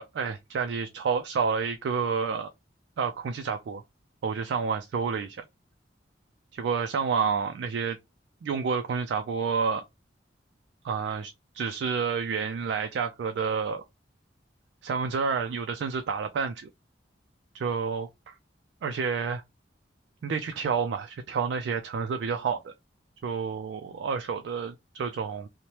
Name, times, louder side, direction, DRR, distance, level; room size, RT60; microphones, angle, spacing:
voice 1, 0.0-2.5 3.0-3.8 4.2-5.4 6.5-8.0 8.4-9.8 10.8-13.8 14.8-16.7 17.5-18.4 18.8-19.4 20.2-22.7 23.2-25.5, right 5 dB, 75° right, 0.3 m, -29 dB
2.8 x 2.1 x 3.1 m
head